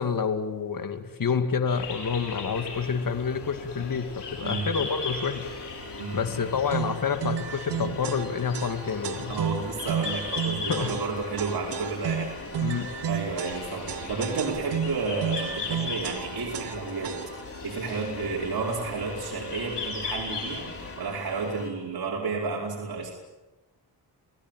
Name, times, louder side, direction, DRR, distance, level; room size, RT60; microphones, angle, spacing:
voice 1, 0.0-5.5 6.1-9.4 10.7-10.9 12.6-12.9, left 6 dB, 55° left, 8 dB, 2.5 m, -28 dB
sound 1, 1.7-21.0, left 4 dB, 85° left, 6.5 m, -39 dB
sound 2, 2.5-21.7, left 2 dB, 35° left, 5.2 m, -43 dB
voice 2, 4.4-4.7 6.0-6.5 9.3-12.4 13.1-17.2 17.6-23.2, right 4 dB, 65° right, -2 dB, 5.2 m, -31 dB
sound 3, 6.7-17.6, right 8 dB, 90° right, 1.2 m, -33 dB
29.0 x 18.0 x 9.3 m, 1.1 s
cardioid pair, 65°, 40 cm